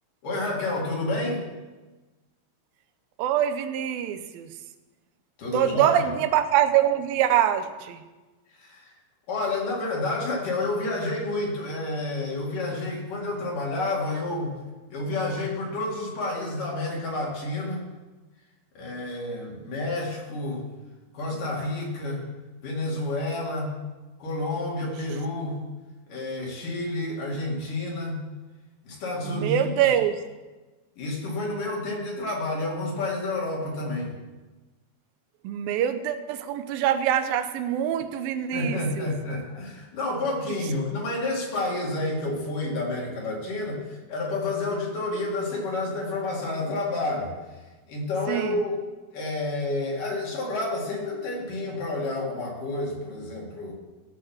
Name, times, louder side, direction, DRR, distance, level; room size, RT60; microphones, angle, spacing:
voice 1, 0.2-1.4 5.4-6.1 8.6-8.9 9.3-14.5 14.9-17.9 18.8-20.6 21.1-22.3 22.6-23.7 24.2-25.6 26.1-28.2 28.8-29.9 31.0-34.1 38.5-47.4 47.9-48.8 49.1-53.7, left 2 dB, 65° left, -2 dB, 3.7 m, -29 dB
voice 2, 3.2-4.5 5.5-8.0 29.3-30.2 35.4-39.1 48.3-48.6, right 10 dB, 85° right, 9 dB, 2.5 m, -24 dB
16.0 x 5.5 x 7.1 m, 1.2 s
omnidirectional pair, 4.2 m